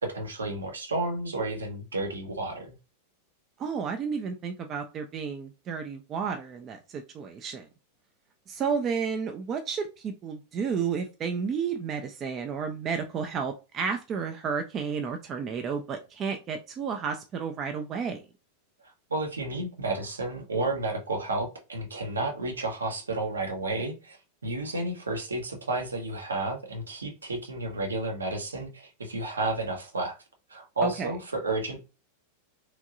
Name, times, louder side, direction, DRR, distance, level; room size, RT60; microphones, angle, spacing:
voice 1, 0.0-2.8 18.8-24.2 24.4-30.1 30.5-31.8, right 2 dB, 75° right, 2 dB, 0.7 m, -31 dB
voice 2, 3.6-7.7 8.5-18.2 30.8-31.1, right 6 dB, 30° right, 5 dB, 0.3 m, -32 dB
3.0 x 2.6 x 2.5 m, 0.30 s
figure-of-eight pair, 90°, 0 cm